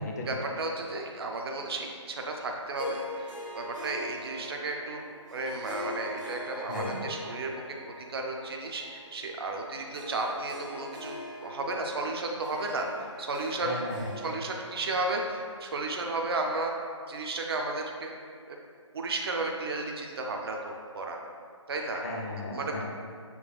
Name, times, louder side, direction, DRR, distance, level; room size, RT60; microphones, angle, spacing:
voice 1, 0.3-5.0 5.3-7.5 8.1-12.9 13.2-13.8 14.2-16.7 17.1-18.1 18.5-18.6 18.9-21.2 21.7-22.0 22.5-22.8, right 2 dB, 50° right, 1 dB, 0.4 m, -33 dB
Harp, 2.7-16.4, left 1 dB, 90° right, 1.5 m, -43 dB
voice 2, 6.7-7.0 13.6-14.2 22.0-22.8, left 2 dB, 30° left, 0 dB, 0.4 m, -36 dB
6.8 x 2.3 x 2.3 m, 2.1 s
figure-of-eight pair, 150°, 16 cm